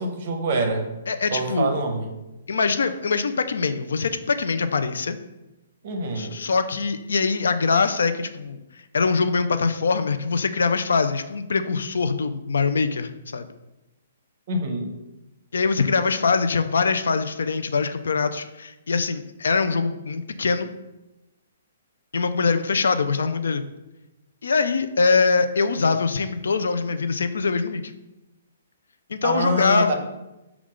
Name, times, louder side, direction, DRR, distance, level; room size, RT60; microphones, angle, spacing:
voice 1, 0.0-0.9 1.3-2.1 5.8-6.4 14.5-14.9 29.2-29.9, right 2 dB, 35° right, 4 dB, 0.6 m, -25 dB
voice 2, 1.1-1.7 2.5-5.2 6.2-8.6 8.9-13.5 15.5-20.7 22.1-23.6 24.4-27.8 29.1-29.9, left 4 dB, 85° left, 10 dB, 0.4 m, -23 dB
6.2 x 2.3 x 3.7 m, 0.99 s
hypercardioid pair, 175°, 0 cm